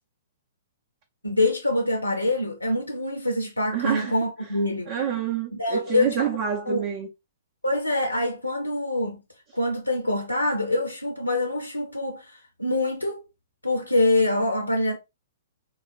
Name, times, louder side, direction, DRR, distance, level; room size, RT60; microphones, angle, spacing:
voice 1, 1.2-4.9 5.5-6.2 6.7-6.8 7.6-9.2 9.5-13.2 13.6-15.0, left 2 dB, 90° left, 0.4 m, -25 dB
voice 2, 3.7-4.1 4.9-7.1, right 8 dB, 45° right, 0.4 m, -27 dB
3.0 x 2.1 x 2.3 m
figure-of-eight pair, 115°, 0 cm